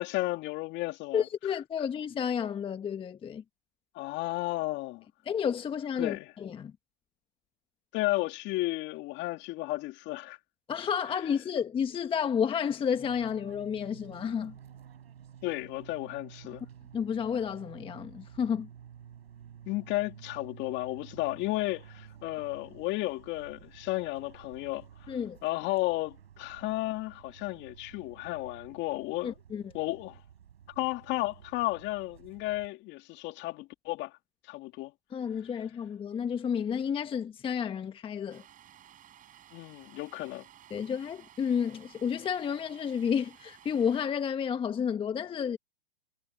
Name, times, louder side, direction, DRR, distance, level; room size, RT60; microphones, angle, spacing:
voice 1, 0.0-1.2 3.9-5.1 6.0-6.3 7.9-10.4 15.4-16.6 19.7-25.2 25.4-29.3 29.7-30.2 30.8-34.1 34.5-34.9 39.5-40.4, left 19 dB, 35° left, 2.3 m, -33 dB
voice 2, 1.1-3.4 5.2-6.7 10.7-14.5 16.9-18.7 25.1-25.4 29.2-29.7 35.1-38.4 40.7-45.6, left 7 dB, 15° left, 1.3 m, -31 dB
Fixed-wing aircraft airplane, 12.9-32.7, right 9 dB, 75° right, 6.0 m, -52 dB
Domestic sounds home sounds, 38.3-44.1, right 11 dB, 25° right, 6.3 m, -56 dB
hypercardioid pair, 120°, 31 cm